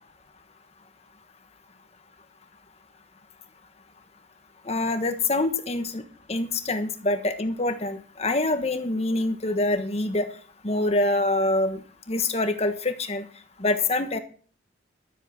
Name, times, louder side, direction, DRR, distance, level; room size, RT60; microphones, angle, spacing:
voice 1, 4.7-6.0 6.3-10.3 10.6-11.8 12.1-13.2 13.6-14.2, left 2 dB, 35° left, 7 dB, 1.3 m, -25 dB
12.5 x 7.9 x 6.0 m, 0.42 s
head